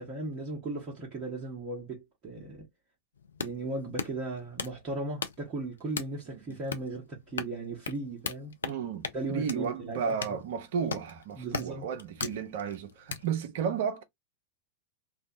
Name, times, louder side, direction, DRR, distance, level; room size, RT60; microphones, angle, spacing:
voice 1, 0.0-2.7 3.4-8.5 9.1-10.4 11.4-11.9, right 2 dB, 30° right, 0.9 m, -37 dB
sound 1, 3.2-13.3, left 6 dB, 70° left, 0.4 m, -40 dB
voice 2, 6.3-6.6 8.6-14.0, right 7 dB, 55° right, 0.4 m, -33 dB
2.6 x 2.2 x 2.6 m
figure-of-eight pair, 90°, 0 cm